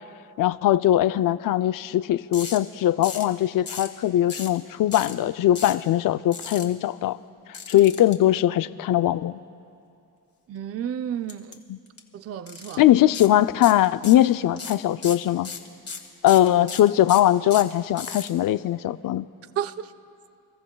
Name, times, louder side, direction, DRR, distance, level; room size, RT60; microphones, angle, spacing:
voice 1, 0.4-7.2 7.7-9.4 11.7-11.8 12.8-15.5 16.2-19.3, left 13 dB, 55° left, 0.4 m, -20 dB
sound 1, 2.3-2.6 3.0-3.3 3.7-3.9 4.3-4.6 4.9-5.1 5.5-5.8 6.3-6.6 7.5-8.1 11.3-11.5 11.9-12.0 12.5-12.8 13.1-13.3 13.6-14.3 14.6-18.3, left 5 dB, 35° left, 1.7 m, -36 dB
voice 2, 10.5-11.6 12.1-12.8 19.6-19.9, right 9 dB, 40° right, 0.4 m, -31 dB
29.0 x 14.0 x 2.3 m
cardioid pair, 75°, 40 cm